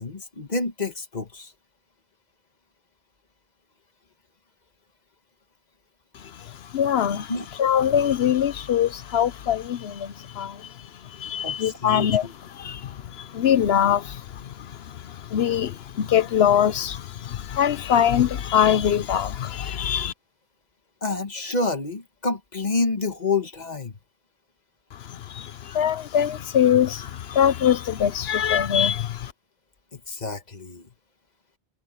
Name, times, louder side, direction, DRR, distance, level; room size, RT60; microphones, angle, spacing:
voice 1, 0.0-1.5 7.3-7.5 11.4-12.3 21.0-23.9 29.9-30.9, left 3 dB, 40° left, 1.6 m, -28 dB
voice 2, 6.1-7.3 7.6-12.3 12.5-20.1 24.9-29.3, left 9 dB, 70° left, 1.0 m, -23 dB
omnidirectional pair, 1.1 m